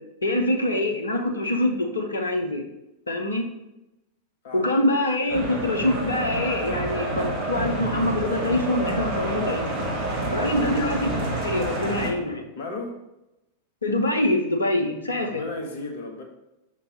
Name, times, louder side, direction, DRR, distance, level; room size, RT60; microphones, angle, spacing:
voice 1, 0.2-2.7 3.1-3.4 4.5-9.6 10.3-11.1 11.4-12.5 13.8-15.4, left 1 dB, 75° left, 4 dB, 0.8 m, -25 dB
voice 2, 4.4-5.0 10.5-10.8 12.5-13.0 15.2-16.2, left 2 dB, 55° left, 1 dB, 1.4 m, -35 dB
sound 1, 5.3-12.1, right 1 dB, 40° right, 1.9 m, -28 dB
5.6 x 3.7 x 5.4 m, 0.91 s
figure-of-eight pair, 90°, 0 cm